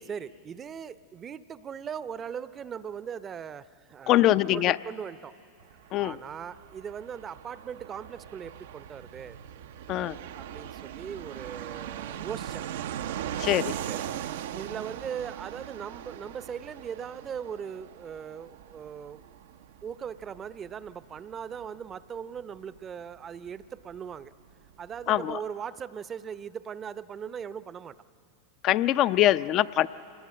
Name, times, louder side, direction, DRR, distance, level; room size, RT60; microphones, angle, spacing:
voice 1, 0.1-5.3 6.0-9.4 10.3-12.7 13.9-14.0 14.5-19.3 19.8-24.3 24.8-28.0, right 7 dB, 30° right, 15 dB, 0.7 m, -39 dB
voice 2, 4.1-4.8 5.9-6.2 9.9-10.2 13.4-13.8 25.1-25.4 28.6-29.9, left 14 dB, 45° left, 14 dB, 0.5 m, -23 dB
Fixed-wing aircraft airplane, 5.6-24.0 24.2-24.3 24.5-25.2, right 11 dB, 70° right, 0.6 m, -40 dB
27.0 x 19.5 x 7.6 m, 2.5 s
hypercardioid pair, 95°, 0 cm